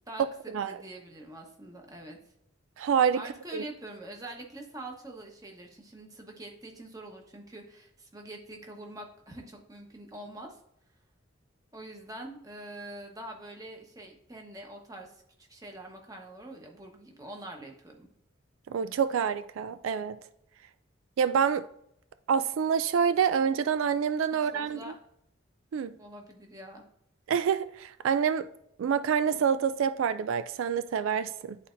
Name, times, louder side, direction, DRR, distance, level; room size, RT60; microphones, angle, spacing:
voice 1, 0.1-2.2 3.1-10.6 11.7-18.1 24.3-25.0 26.0-26.8, right 1 dB, 20° right, 1.0 m, -45 dB
voice 2, 2.8-3.2 3.5-3.6 18.7-20.2 21.2-21.7 22.3-24.9 25.7-25.9 27.3-28.5 28.8-31.6, right 7 dB, 85° right, 0.3 m, -27 dB
11.0 x 4.1 x 2.6 m
head